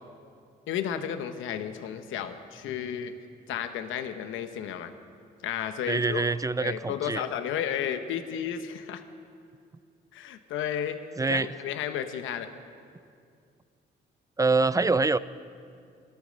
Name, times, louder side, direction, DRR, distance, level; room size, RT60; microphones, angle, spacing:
voice 1, 0.7-3.1 3.5-4.9 5.4-6.3 6.6-9.0 10.1-11.0 11.3-12.5, left 9 dB, 85° left, 9 dB, 1.0 m, -32 dB
voice 2, 5.9-7.2 11.2-11.5 14.4-15.2, right 3 dB, 15° right, 16 dB, 0.4 m, -25 dB
17.5 x 13.0 x 6.5 m, 2.3 s
cardioid pair, 90°, 20 cm